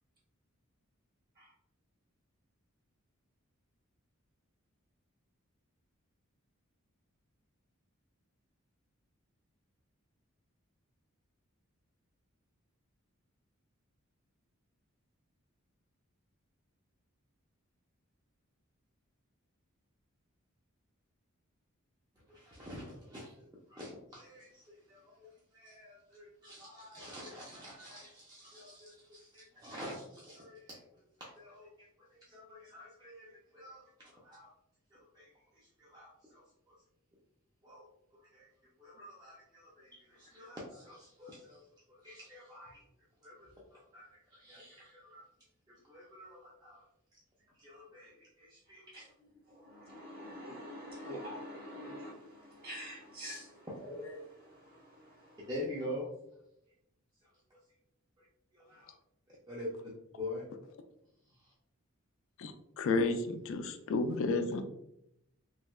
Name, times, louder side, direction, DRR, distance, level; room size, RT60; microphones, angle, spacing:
voice 1, 22.3-23.3 23.7-30.8 31.2-34.5 34.9-35.3 35.8-36.8 37.6-38.5 38.8-42.8 43.2-45.2 45.7-46.8 47.6-49.1 55.5-56.0 57.5-57.6 58.2-58.3 58.5-58.9 59.3-59.9 60.2-60.4 61.4-61.5, left 1 dB, 20° right, -6 dB, 0.5 m, -47 dB
voice 2, 49.2-55.5, equal, 45° right, -4 dB, 1.4 m, -46 dB
voice 3, 62.4-64.6, left 3 dB, 65° left, 7 dB, 0.3 m, -32 dB
3.2 x 2.7 x 2.2 m, 0.80 s
head